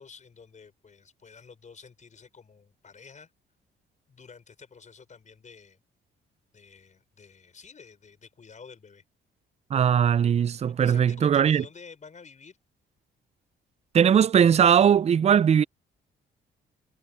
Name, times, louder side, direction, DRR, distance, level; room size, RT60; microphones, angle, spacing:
voice 1, 0.0-3.3 4.1-5.8 6.5-9.0 10.7-12.6, left 5 dB, 40° left, 5.3 m, -50 dB
voice 2, 9.7-11.6 13.9-15.6, right 8 dB, 35° right, 0.4 m, -20 dB
cardioid pair, 90°, 20 cm